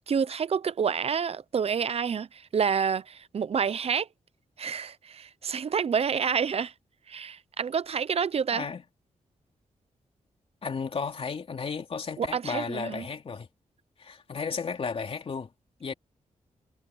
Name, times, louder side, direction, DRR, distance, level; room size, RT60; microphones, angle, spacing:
voice 1, 0.1-4.1 4.6-6.7 7.1-8.6 12.2-13.0, right 6 dB, 50° right, 0.7 m, -28 dB
voice 2, 8.5-8.8 10.6-13.5 14.0-15.5 15.8-15.9, left 5 dB, 50° left, 2.9 m, -33 dB
wide cardioid pair, 110°, 13 cm